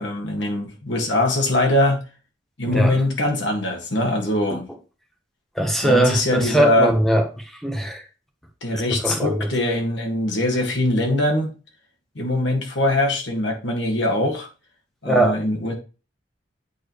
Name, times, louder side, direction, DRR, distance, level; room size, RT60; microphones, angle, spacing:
voice 1, 0.0-2.0 2.6-4.7 5.8-6.9 8.6-11.5 12.2-14.5 15.0-15.7, left 1 dB, 90° left, 1 dB, 1.9 m, -22 dB
voice 2, 2.7-3.0 4.5-4.6 5.6-8.0 9.0-9.5 15.0-15.4, right 1 dB, ahead, 4 dB, 1.1 m, -20 dB
8.3 x 4.5 x 3.1 m, 0.32 s
head